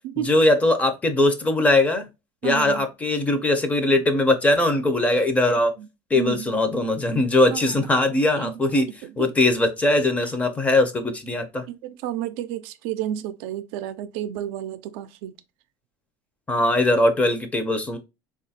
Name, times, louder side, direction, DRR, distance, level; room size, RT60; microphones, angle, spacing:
voice 1, 0.3-2.1 2.4-5.7 6.1-8.9 9.2-11.6 16.5-18.0, left 2 dB, 15° left, 0.5 m, -20 dB
voice 2, 2.4-2.9 5.8-5.9 6.1-6.6 7.5-7.9 8.4-8.6 9.0-9.3 11.7-15.3, right 12 dB, 75° right, 0.4 m, -31 dB
3.6 x 2.3 x 2.7 m
cardioid pair, 150°, 10 cm